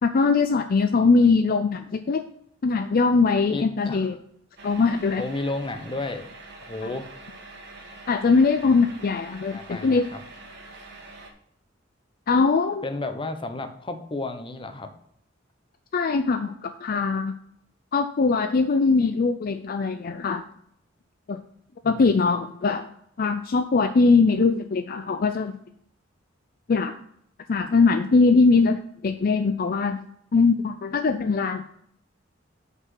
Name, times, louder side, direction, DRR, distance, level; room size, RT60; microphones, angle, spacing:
voice 1, 0.0-2.2 2.6-4.2 4.6-5.2 8.1-10.1 12.3-12.8 15.9-17.3 17.9-20.4 21.3-21.4 21.8-22.9 23.2-25.6 26.7-26.9 27.5-30.0 30.3-31.6, left 4 dB, 50° left, 8 dB, 0.4 m, -21 dB
voice 2, 3.5-4.1 5.2-6.3 6.7-7.1 8.7-8.9 9.5-10.2 12.8-14.9 21.8-22.2, left 2 dB, 25° left, 7 dB, 0.8 m, -32 dB
sound 1, 4.6-11.3, right 2 dB, 60° right, 1.5 m, -45 dB
5.9 x 5.5 x 6.0 m, 0.70 s
head